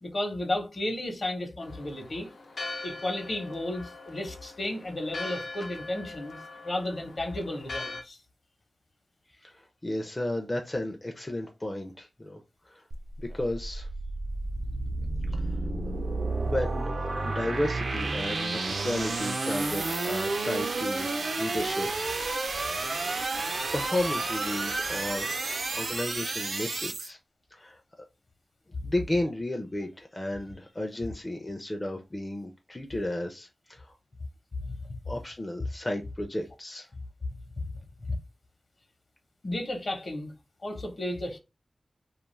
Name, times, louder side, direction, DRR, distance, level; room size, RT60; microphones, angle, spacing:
voice 1, 0.0-2.3 2.8-6.4 6.6-8.2 34.6-34.9 37.6-38.2 39.4-40.3 40.6-41.4, left 1 dB, 55° left, 0.8 m, -33 dB
Church bell, 1.6-8.0, left 3 dB, 80° left, 0.5 m, -41 dB
voice 2, 9.3-12.4 12.6-12.8 13.2-13.9 15.3-15.6 16.5-21.1 21.4-21.9 23.7-27.2 27.5-27.8 28.8-33.9 35.1-36.9, left 1 dB, 25° left, 0.4 m, -33 dB
sound 1, 12.9-27.1, right 3 dB, 80° right, 0.5 m, -31 dB
2.3 x 2.3 x 3.1 m
wide cardioid pair, 65°, 0 cm